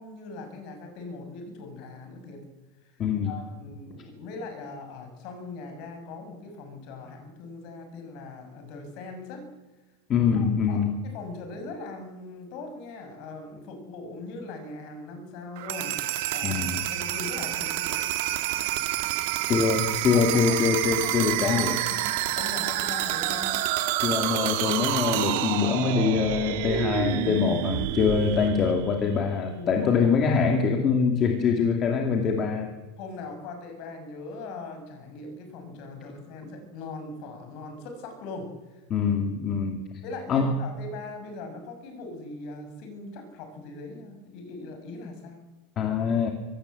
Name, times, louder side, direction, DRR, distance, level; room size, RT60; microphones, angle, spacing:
voice 1, 0.0-2.4 2.8-9.4 10.3-18.0 20.1-20.6 21.2-23.6 29.5-30.5 33.0-38.8 40.0-45.4, left 3 dB, 45° left, 5 dB, 6.4 m, -40 dB
voice 2, 3.0-3.4 10.1-10.9 16.4-16.8 19.5-21.8 24.0-32.7 38.9-39.8 40.3-40.6 45.8-46.3, left 6 dB, 25° left, 4 dB, 2.3 m, -24 dB
sound 1, 15.6-29.4, right 14 dB, 60° right, 2.1 m, -28 dB
25.0 x 18.5 x 8.0 m, 1.2 s
supercardioid pair, 165°, 0 cm